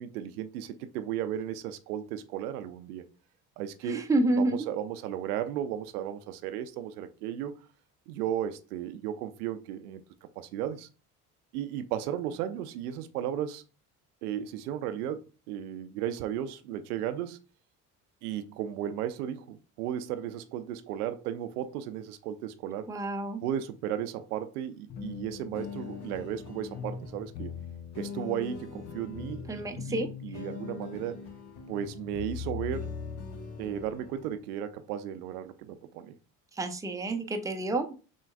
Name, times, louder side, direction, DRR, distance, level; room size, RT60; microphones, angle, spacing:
voice 1, 0.0-3.1 3.6-4.1 4.4-7.5 8.1-10.0 10.4-10.9 11.5-13.6 14.2-17.4 18.2-22.9 23.4-27.6 27.9-31.2 31.7-32.9 33.6-36.1, right 10 dB, 75° right, 0.5 m, -35 dB
voice 2, 3.8-4.7 22.9-23.4 29.5-30.4 36.5-37.9, right 2 dB, 10° right, 0.5 m, -29 dB
sound 1, 24.9-34.4, left 6 dB, 60° left, 0.9 m, -40 dB
6.2 x 2.3 x 2.3 m
figure-of-eight pair, 50°, 45 cm